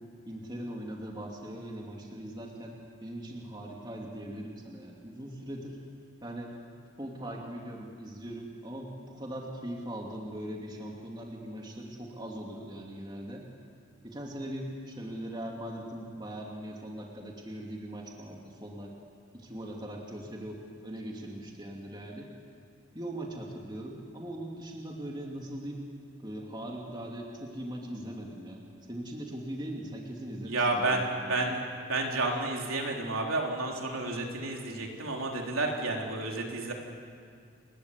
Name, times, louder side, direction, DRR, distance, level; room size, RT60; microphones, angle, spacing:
voice 1, 0.3-5.8 6.2-6.5 7.0-13.4 14.0-18.9 19.3-22.3 22.9-25.9 26.2-28.6 28.9-31.3, right 1 dB, 20° right, -1 dB, 2.7 m, -40 dB
voice 2, 30.4-31.6 31.9-36.7, right 2 dB, 80° right, 0 dB, 3.8 m, -31 dB
28.5 x 21.0 x 8.3 m, 2.2 s
head